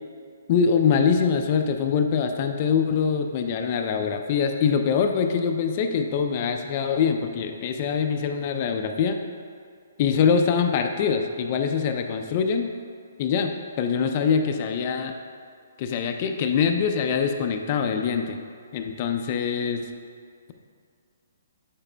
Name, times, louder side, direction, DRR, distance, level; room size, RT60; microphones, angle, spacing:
voice 1, 0.5-9.2 10.0-12.7 13.2-15.2 15.8-18.4 18.7-19.9, left 6 dB, 40° left, 5 dB, 0.4 m, -24 dB
8.7 x 6.9 x 2.2 m, 2.2 s
hypercardioid pair, 145°, 0 cm